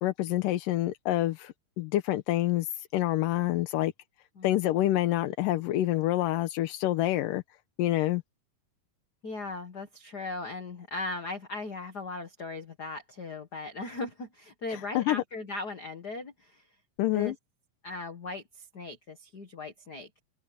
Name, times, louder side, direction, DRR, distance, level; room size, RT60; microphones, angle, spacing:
voice 1, 0.0-3.9 4.4-7.4 7.8-8.2 14.7-15.2 17.0-17.3, left 15 dB, 80° left, 2.5 m, -27 dB
voice 2, 9.2-16.6 17.1-17.3 17.8-20.1, left 3 dB, 40° left, 1.5 m, -38 dB
open air
omnidirectional pair, 3.9 m